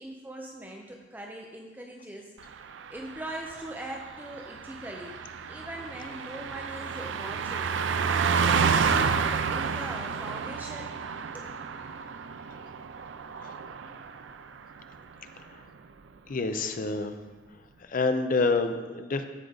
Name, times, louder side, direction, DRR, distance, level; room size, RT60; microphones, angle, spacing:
voice 1, 0.0-5.2 5.5-7.8 8.3-11.5, right 1 dB, 10° right, 0 dB, 0.6 m, -41 dB
Car passing by, 2.5-14.4 14.7-14.9, right 6 dB, 75° right, 0.5 m, -30 dB
voice 2, 16.3-17.2 17.8-19.2, left 3 dB, 45° left, 8 dB, 0.5 m, -28 dB
13.0 x 4.8 x 3.9 m, 1.4 s
head